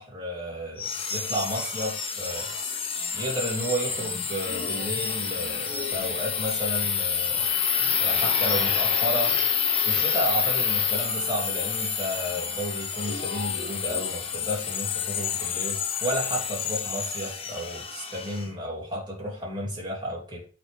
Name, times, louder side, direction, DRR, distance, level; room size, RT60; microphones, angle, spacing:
voice 1, 0.0-2.5 3.1-7.5 8.0-9.4 9.8-20.5, equal, 20° right, 3.1 m, -32 dB
sound 1, 0.8-18.4, left 7 dB, 30° left, 1.1 m, -28 dB
8.8 x 4.3 x 3.4 m
head